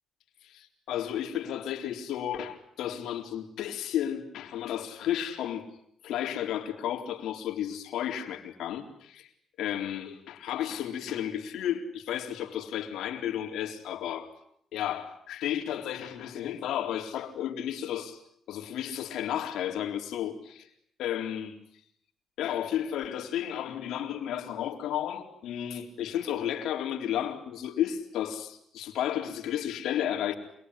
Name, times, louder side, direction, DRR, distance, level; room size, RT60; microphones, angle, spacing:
voice 1, 0.4-5.7 6.0-9.3 9.6-14.3 14.7-18.2 18.5-20.7 21.0-21.5 22.4-30.3, left 10 dB, 80° left, 4 dB, 3.9 m, -33 dB
27.0 x 22.0 x 10.0 m, 0.69 s
cardioid pair, 90°, 0 cm